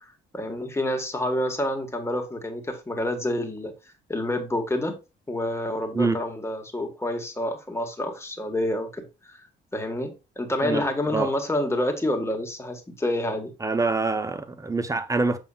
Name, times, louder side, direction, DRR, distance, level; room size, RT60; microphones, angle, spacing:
voice 1, 0.3-3.7 4.1-4.9 5.3-9.5 9.7-13.5, left 1 dB, 15° left, 1.6 m, -28 dB
voice 2, 10.6-11.3 13.6-15.4, right 3 dB, 15° right, 0.8 m, -25 dB
7.1 x 5.5 x 2.4 m
cardioid pair, 90°, 20 cm